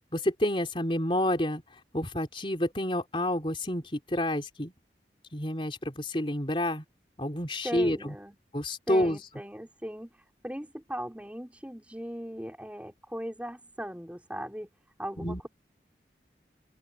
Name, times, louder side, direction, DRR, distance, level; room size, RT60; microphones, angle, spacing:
voice 1, 0.1-1.6 1.9-4.7 5.3-6.8 7.2-8.1 8.5-9.2 15.2-15.5, left 1 dB, 30° left, 3.9 m, -29 dB
voice 2, 7.6-8.4 8.9-10.1 10.4-14.7 15.0-15.5, equal, 10° right, 3.8 m, -38 dB
open air
head